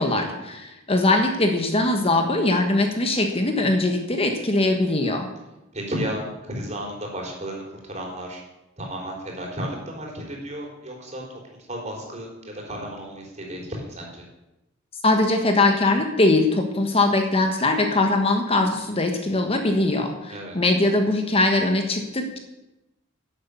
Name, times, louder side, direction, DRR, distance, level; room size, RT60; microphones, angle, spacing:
voice 1, 0.0-5.3 15.0-22.4, left 2 dB, 30° left, 4 dB, 1.3 m, -21 dB
voice 2, 5.7-8.4 8.8-11.2 11.6-14.2 20.3-20.6, equal, 35° right, -1 dB, 4.1 m, -33 dB
11.5 x 8.2 x 8.4 m, 0.96 s
head